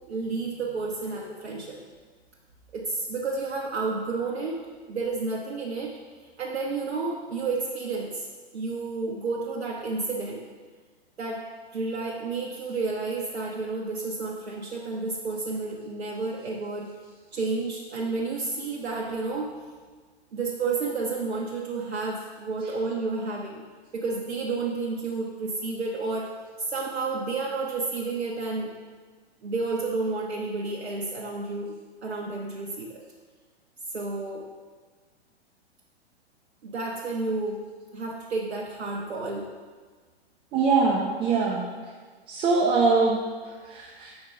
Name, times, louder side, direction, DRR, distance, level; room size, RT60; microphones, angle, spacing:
voice 1, 0.1-1.8 2.7-4.6 4.9-5.9 6.4-8.3 8.5-10.4 11.2-11.4 11.7-16.9 17.3-19.5 20.3-23.6 23.9-28.7 29.4-31.7 32.0-33.0 33.9-34.5 36.6-37.6 37.9-39.5, right 3 dB, 75° right, -2 dB, 0.8 m, -31 dB
voice 2, 40.5-41.7 42.3-44.1, right 4 dB, 15° right, -3 dB, 0.5 m, -23 dB
5.3 x 4.4 x 4.9 m, 1.5 s
figure-of-eight pair, 105°, 33 cm